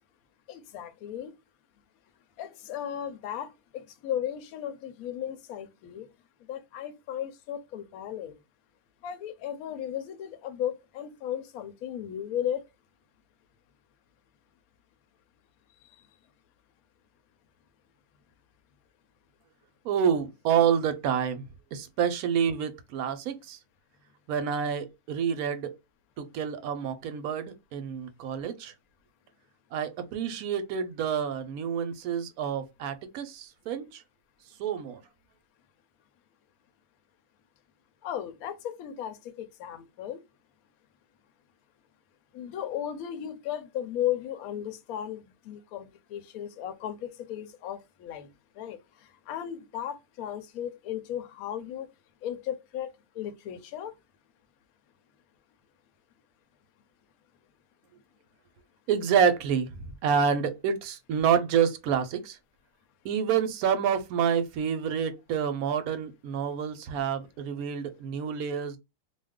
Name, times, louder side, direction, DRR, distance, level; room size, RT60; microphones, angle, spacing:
voice 1, 0.5-1.3 2.4-3.5 3.7-6.1 6.5-8.4 9.0-12.6 38.0-40.2 42.3-48.3 48.6-48.8 49.3-51.9 52.2-52.9 53.2-53.9, left 10 dB, 70° left, 1.0 m, -35 dB
voice 2, 19.8-21.4 21.7-23.6 24.3-25.7 26.2-28.7 29.7-34.0 34.6-35.0 58.9-62.4 63.0-68.8, right 7 dB, 70° right, 1.0 m, -28 dB
2.5 x 2.3 x 3.5 m
omnidirectional pair, 1.7 m